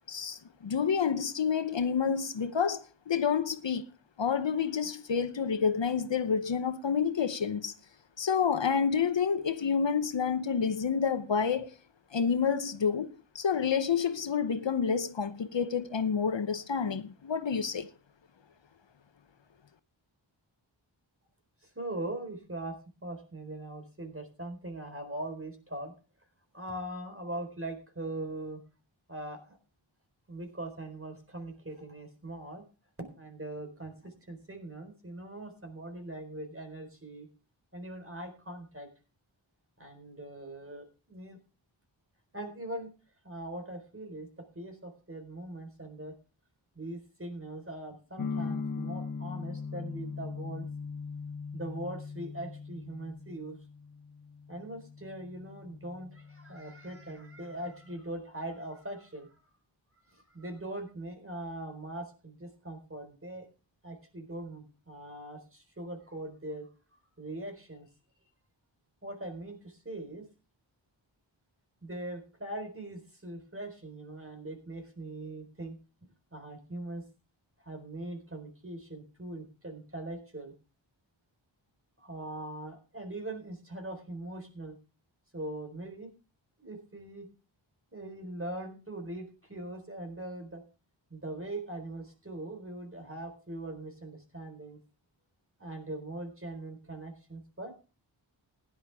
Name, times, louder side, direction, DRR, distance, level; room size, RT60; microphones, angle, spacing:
voice 1, 0.1-3.9 4.2-7.7 8.2-11.7 12.1-13.1 13.3-17.9, left 6 dB, 65° left, 0.9 m, -29 dB
voice 2, 21.6-25.9 26.5-28.6 29.1-29.6 30.3-32.6 33.0-37.3 37.7-38.9 39.8-41.4 42.3-42.9 43.2-46.1 46.8-50.7 51.5-53.6 54.5-59.4 60.1-63.5 63.8-66.7 67.2-67.9 69.0-70.2 71.8-75.8 76.3-77.0 77.6-80.5 82.0-84.8 85.3-86.1 86.6-87.3 87.9-90.6 91.1-94.8 95.6-97.7, right 1 dB, 25° right, 4.2 m, -41 dB
sound 1, 48.2-58.0, left 5 dB, 45° left, 1.5 m, -40 dB
16.0 x 10.5 x 3.5 m
wide cardioid pair, 50°, 47 cm